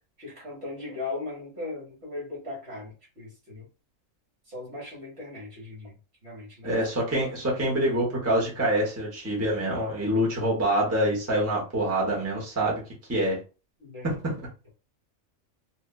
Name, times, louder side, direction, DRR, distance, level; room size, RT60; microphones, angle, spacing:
voice 1, 0.2-3.7 4.5-5.9 6.2-6.8 13.8-14.1, left 2 dB, 50° right, 1.4 m, -38 dB
voice 2, 6.6-12.8 13.1-13.4 14.0-14.3, right 1 dB, 15° right, 0.8 m, -26 dB
2.8 x 2.3 x 2.2 m
omnidirectional pair, 1.4 m